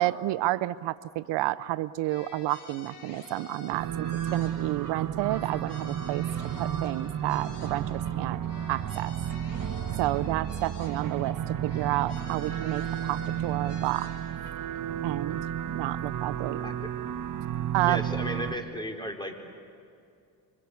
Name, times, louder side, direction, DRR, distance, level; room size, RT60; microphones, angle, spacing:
voice 1, 0.0-6.3 6.6-8.4 8.7-9.1 10.0-11.4 11.6-14.1 15.0-16.6 17.7-18.0, right 16 dB, 85° right, 16 dB, 0.7 m, -30 dB
sound 1, 2.0-4.9 5.2-8.1 8.4-11.3 11.6-14.5, left 4 dB, 75° left, 6.8 m, -49 dB
sound 2, 3.7-18.5, right 10 dB, 50° right, 1.2 m, -32 dB
voice 2, 16.6-16.9 17.8-19.3, equal, 10° left, 3 dB, 4.4 m, -35 dB
26.0 x 26.0 x 8.3 m, 2.4 s
cardioid pair, 80°, 41 cm